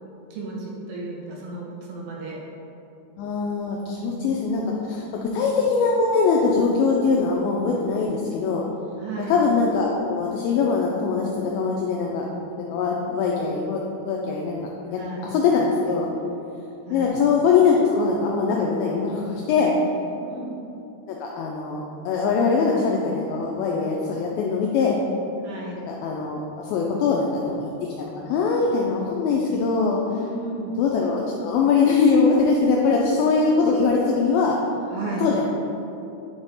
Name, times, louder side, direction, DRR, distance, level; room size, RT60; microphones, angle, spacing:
voice 1, 0.3-2.4 3.9-4.3 5.1-5.2 9.0-9.4 15.0-15.4 16.9-17.2 20.2-20.6 25.4-25.9 30.2-30.8 34.9-35.3, right 3 dB, 80° right, -3 dB, 2.4 m, -34 dB
voice 2, 3.2-8.6 9.3-12.3 12.6-14.6 14.9-16.1 16.9-19.8 21.1-25.0 25.9-30.0 30.8-34.6 35.2-35.5, left 4 dB, 85° left, -1 dB, 2.1 m, -22 dB
7.2 x 3.4 x 4.0 m, 2.9 s
omnidirectional pair, 4.7 m